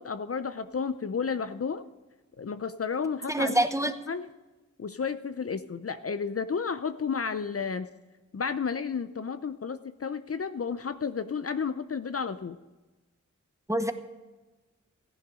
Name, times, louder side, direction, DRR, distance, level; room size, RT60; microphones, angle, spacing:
voice 1, 0.0-1.8 2.4-3.6 3.8-4.3 4.8-7.9 8.3-12.6, left 5 dB, 50° left, 11 dB, 0.6 m, -32 dB
voice 2, 3.3-4.0 13.7-13.9, right 1 dB, 10° right, 8 dB, 1.1 m, -25 dB
14.5 x 10.5 x 5.0 m, 1.2 s
cardioid pair, 50°, 30 cm